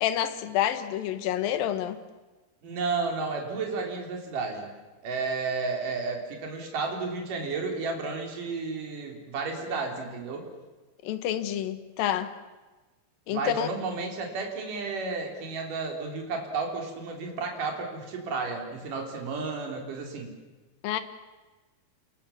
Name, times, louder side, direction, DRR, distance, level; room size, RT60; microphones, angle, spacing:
voice 1, 0.0-2.0 11.0-12.3 13.3-13.7 20.8-21.0, left 11 dB, 70° left, 10 dB, 2.9 m, -28 dB
voice 2, 2.6-4.7 5.0-10.4 13.3-20.4, right 4 dB, 60° right, 2 dB, 4.9 m, -32 dB
28.5 x 21.5 x 7.2 m, 1.2 s
omnidirectional pair, 4.4 m